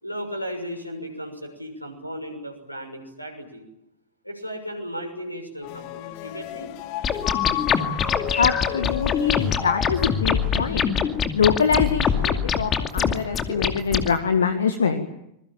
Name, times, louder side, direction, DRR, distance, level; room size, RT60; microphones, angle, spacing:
voice 1, 0.0-3.6 4.2-6.7, equal, 90° left, 7 dB, 6.4 m, -35 dB
sound 1, 5.6-10.9, left 18 dB, 45° left, 1.2 m, -33 dB
sound 2, 7.0-14.1, left 7 dB, 25° left, 2.4 m, -24 dB
voice 2, 8.3-10.9 11.3-15.1, left 6 dB, 70° left, 10 dB, 1.7 m, -24 dB
26.0 x 22.0 x 8.9 m, 0.81 s
figure-of-eight pair, 90°, 0 cm